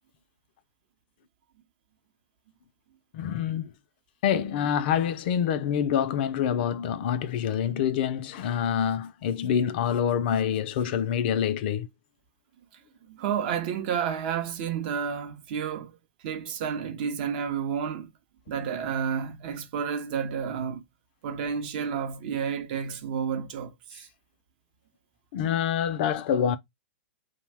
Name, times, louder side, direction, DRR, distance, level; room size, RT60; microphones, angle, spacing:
voice 1, 3.1-3.7 4.2-11.9 25.3-26.6, left 8 dB, 50° left, 0.4 m, -26 dB
voice 2, 13.1-15.9 16.2-18.1 18.5-20.8 21.2-23.7 24.0-24.1, right 7 dB, 50° right, 0.6 m, -30 dB
2.6 x 2.1 x 3.2 m
hypercardioid pair, 125°, 7 cm